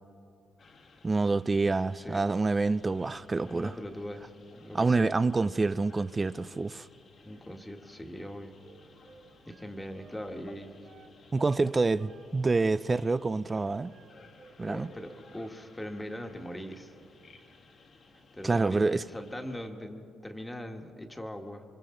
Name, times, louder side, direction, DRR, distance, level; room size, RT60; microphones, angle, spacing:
sound 1, 0.6-19.7, left 3 dB, 55° left, 2.0 m, -57 dB
voice 1, 1.0-3.7 4.7-6.9 11.3-13.9 14.6-14.9 18.4-19.0, right 3 dB, 25° right, 0.4 m, -27 dB
voice 2, 3.4-5.2 7.2-8.6 9.5-10.9 14.6-16.9 18.3-21.6, equal, 10° left, 1.6 m, -41 dB
Wind instrument woodwind instrument, 8.1-11.1 11.4-11.7 12.0-14.5 14.8-15.6, right 5 dB, 75° right, 2.8 m, -59 dB
27.0 x 24.5 x 3.9 m
cardioid pair, 90°, 0 cm